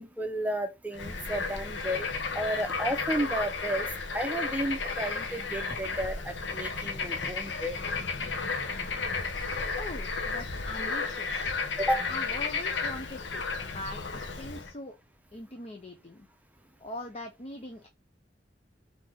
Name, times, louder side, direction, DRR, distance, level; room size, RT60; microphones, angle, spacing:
voice 1, 0.0-2.1 2.3-3.9 4.1-7.8 11.8-12.1, right 1 dB, 10° right, 0.7 m, -32 dB
Bird / Frog, 0.9-14.7, left 4 dB, 90° left, 0.9 m, -33 dB
voice 2, 9.8-11.5 12.1-15.0 15.3-16.3 16.8-17.9, left 2 dB, 35° left, 0.6 m, -42 dB
3.9 x 2.9 x 4.6 m
head